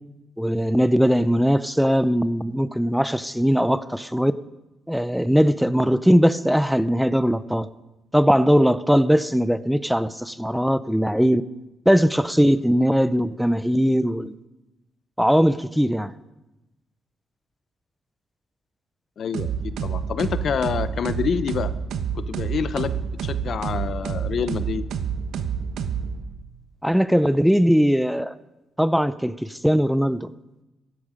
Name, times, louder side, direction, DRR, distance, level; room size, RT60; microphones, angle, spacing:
voice 1, 0.4-4.3 4.9-7.7 8.1-11.4 11.9-14.3 15.2-16.1 26.8-28.3 28.8-30.3, equal, ahead, 15 dB, 0.5 m, -20 dB
voice 2, 19.2-21.7 22.1-24.8, left 7 dB, 55° left, 14 dB, 0.7 m, -27 dB
sound 1, 19.3-26.5, right 7 dB, 80° right, 1.0 m, -28 dB
15.5 x 11.5 x 5.0 m, 1.0 s
cardioid pair, 90°, 0 cm